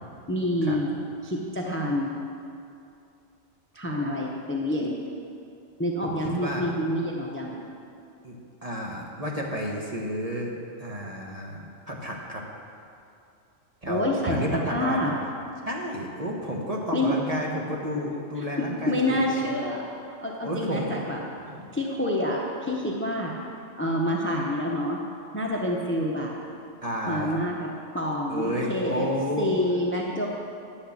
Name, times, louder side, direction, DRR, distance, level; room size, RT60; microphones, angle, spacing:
voice 1, 0.3-0.9 1.2-2.1 3.8-4.9 5.8-7.5 13.8-15.1 16.9-17.1 18.6-19.8 20.2-21.2 21.7-23.3 23.8-25.0 25.3-26.3 27.1-27.5 27.9-29.1 29.4-30.3, left 1 dB, 10° left, -1 dB, 0.8 m, -27 dB
voice 2, 6.0-6.7 8.2-10.5 10.8-12.4 13.8-15.1 15.6-19.5 20.4-21.2 21.5-21.7 26.8-27.3 28.3-29.5, equal, 30° right, -2 dB, 1.1 m, -31 dB
10.0 x 6.4 x 7.2 m, 2.5 s
omnidirectional pair, 1.3 m